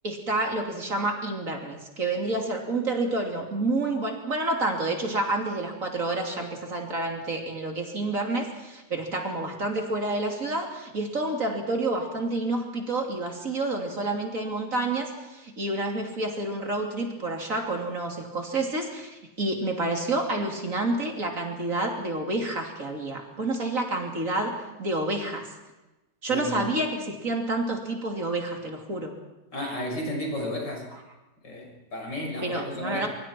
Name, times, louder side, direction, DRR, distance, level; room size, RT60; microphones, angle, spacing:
voice 1, 0.0-25.5 26.2-29.1 32.4-33.1, right 2 dB, 45° right, 2 dB, 3.4 m, -29 dB
voice 2, 26.3-26.7 29.5-30.9 31.4-33.1, left 1 dB, 80° left, 1 dB, 6.4 m, -33 dB
24.5 x 23.5 x 4.5 m, 1.0 s
omnidirectional pair, 1.9 m